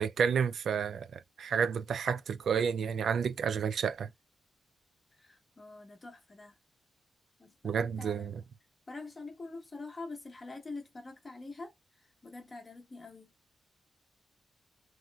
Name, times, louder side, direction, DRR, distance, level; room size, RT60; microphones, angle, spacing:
voice 1, 0.0-4.1 7.6-8.4, right 7 dB, 75° right, 0.3 m, -30 dB
voice 2, 5.1-6.6 7.4-8.3 8.9-13.3, left 3 dB, 30° left, 1.1 m, -45 dB
3.1 x 2.2 x 2.3 m
cardioid pair, 95°, 0 cm